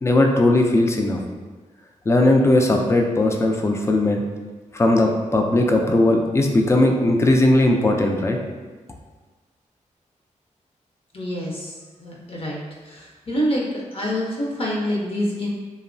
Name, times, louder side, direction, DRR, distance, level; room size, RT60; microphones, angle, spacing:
voice 1, 0.0-1.2 2.1-4.2 4.7-8.4, left 1 dB, 20° left, 2 dB, 0.3 m, -18 dB
voice 2, 11.1-11.7 12.0-13.6 13.9-15.5, equal, 45° left, -3 dB, 0.7 m, -26 dB
2.8 x 2.0 x 2.5 m, 1.3 s
cardioid pair, 80°, 13 cm